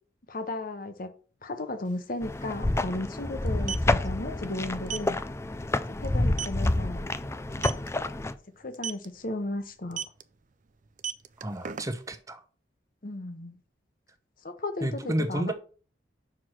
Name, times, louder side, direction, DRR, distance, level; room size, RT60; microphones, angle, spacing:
voice 1, 0.3-1.1 1.4-5.2 5.9-7.1 7.6-7.7 8.6-10.0 13.0-13.6 14.4-15.5, left 2 dB, 50° left, 1.1 m, -35 dB
sound 1, 1.8-1.9 2.2-2.4 3.4-3.9 4.9-5.1 5.5-5.7 6.0-6.1 6.4-6.7 7.5-7.9 8.7-9.1 9.9-10.2 10.9-12.2, right 8 dB, 45° right, 0.5 m, -34 dB
sound 2, 2.2-8.3, left 2 dB, 15° left, 0.4 m, -29 dB
voice 2, 11.4-12.4 14.8-15.5, right 1 dB, 20° right, 0.9 m, -31 dB
6.1 x 4.7 x 6.0 m
head